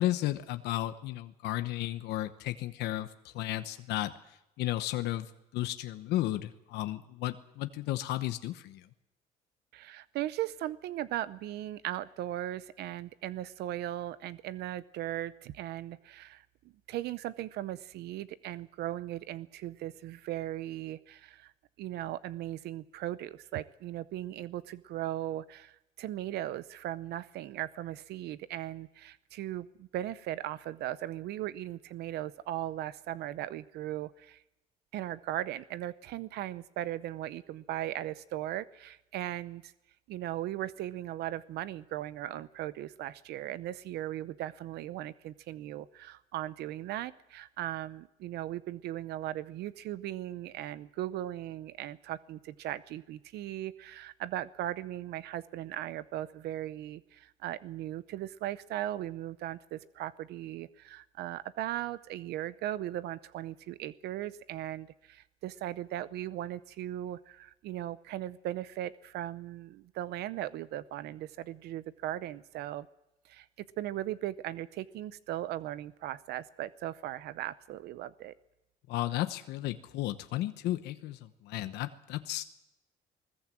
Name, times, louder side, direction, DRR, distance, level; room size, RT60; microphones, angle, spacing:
voice 1, 0.0-4.1 4.6-8.8 78.9-82.4, left 15 dB, 85° left, 10 dB, 1.0 m, -34 dB
voice 2, 9.7-16.4 16.9-21.5 21.8-34.4 34.9-39.7 40.1-72.9 73.2-78.3, right 13 dB, 75° right, 16 dB, 0.7 m, -38 dB
20.5 x 20.5 x 7.6 m, 0.89 s
cardioid pair, 110°, 17 cm